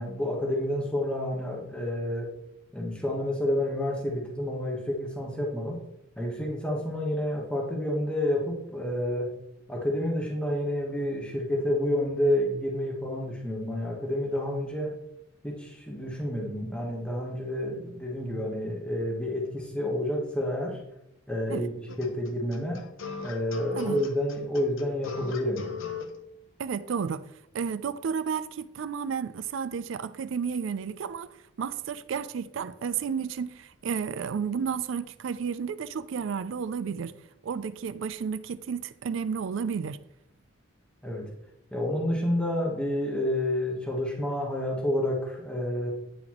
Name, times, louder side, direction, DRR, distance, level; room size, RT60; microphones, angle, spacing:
voice 1, 0.0-2.3 2.7-5.8 6.2-9.3 9.7-14.9 15.4-20.8 21.3-22.8 23.2-25.7 41.0-41.3 41.7-45.9, left 1 dB, 5° left, 1.0 m, -29 dB
sound 1, 21.9-26.1, left 7 dB, 80° left, 0.7 m, -38 dB
voice 2, 26.6-27.2 27.5-31.3 31.6-37.1 37.4-40.0, right 6 dB, 70° right, 0.4 m, -32 dB
9.3 x 3.9 x 3.0 m
head